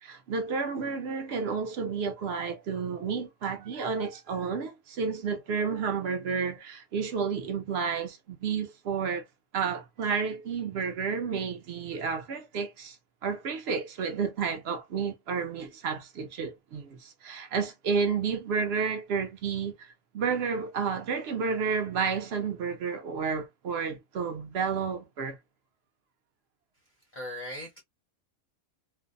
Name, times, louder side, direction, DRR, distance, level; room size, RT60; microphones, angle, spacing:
voice 1, 0.0-9.2 9.5-13.0 13.2-25.4, right 5 dB, 65° right, 0.7 m, -31 dB
voice 2, 27.1-27.8, left 1 dB, 45° left, 0.6 m, -38 dB
2.6 x 2.1 x 2.4 m
omnidirectional pair, 1.5 m